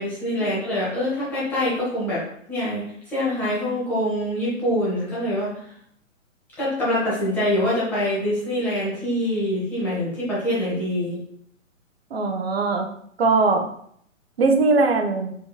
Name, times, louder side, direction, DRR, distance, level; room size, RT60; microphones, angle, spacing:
voice 1, 0.0-2.2 2.5-5.5 6.6-11.2, left 1 dB, 5° left, -8 dB, 0.7 m, -25 dB
voice 2, 12.1-12.9 13.2-13.6 14.4-15.4, right 3 dB, 50° right, 5 dB, 0.6 m, -20 dB
4.7 x 2.9 x 2.2 m, 0.67 s
figure-of-eight pair, 125°, 40 cm